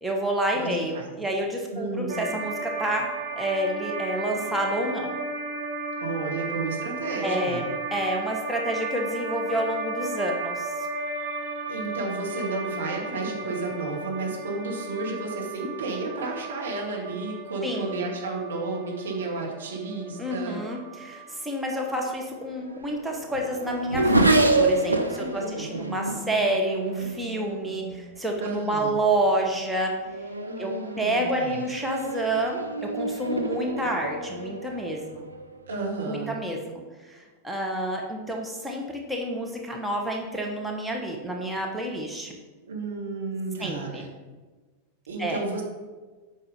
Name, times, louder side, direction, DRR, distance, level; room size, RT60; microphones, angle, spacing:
voice 1, 0.0-5.2 7.2-10.9 17.6-18.1 20.2-29.9 30.6-35.3 36.1-42.4 43.6-44.0 45.2-45.4, right 1 dB, 5° right, 0 dB, 1.2 m, -29 dB
voice 2, 1.7-2.3 6.0-7.6 11.7-20.6 25.1-26.0 28.4-28.9 30.4-31.6 35.7-36.3 42.7-44.1 45.1-45.6, right 3 dB, 65° right, -2 dB, 2.0 m, -32 dB
sound 1, 2.1-21.4, right 3 dB, 45° right, 1.6 m, -35 dB
Race car auto racing / Accelerating revving vroom, 22.3-28.1 28.9-29.3 29.7-35.7, right 2 dB, 85° right, 0.7 m, -28 dB
8.6 x 5.5 x 5.2 m, 1.3 s
figure-of-eight pair, 90°, 0 cm